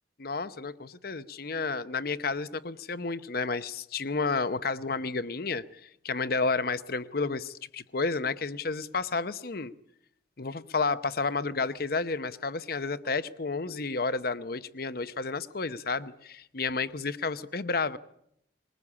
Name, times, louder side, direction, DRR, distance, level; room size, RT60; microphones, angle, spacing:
voice 1, 0.2-9.7 10.4-18.0, left 4 dB, 55° left, 0.9 m, -31 dB
21.5 x 20.5 x 8.6 m
head